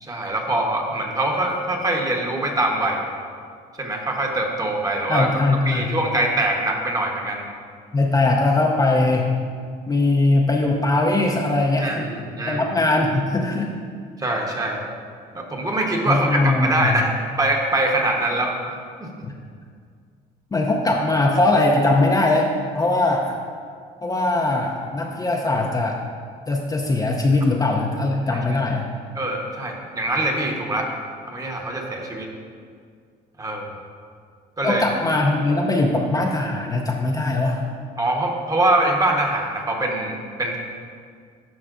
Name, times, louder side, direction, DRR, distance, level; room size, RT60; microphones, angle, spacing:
voice 1, 0.0-3.0 3.8-5.3 5.6-7.5 11.8-12.6 14.2-14.8 15.3-18.6 28.3-28.4 29.1-30.9 31.3-32.3 33.4-33.7 34.6-34.8 38.0-40.6, right 1 dB, 20° right, 1 dB, 1.0 m, -23 dB
voice 2, 5.1-5.9 7.9-9.3 9.9-12.1 12.5-13.8 16.1-17.0 19.2-19.3 20.5-23.4 24.0-26.0 26.5-28.9 34.6-37.6, left 2 dB, 20° left, 0 dB, 0.6 m, -20 dB
11.0 x 5.6 x 2.5 m, 2.1 s
cardioid pair, 110°, 17 cm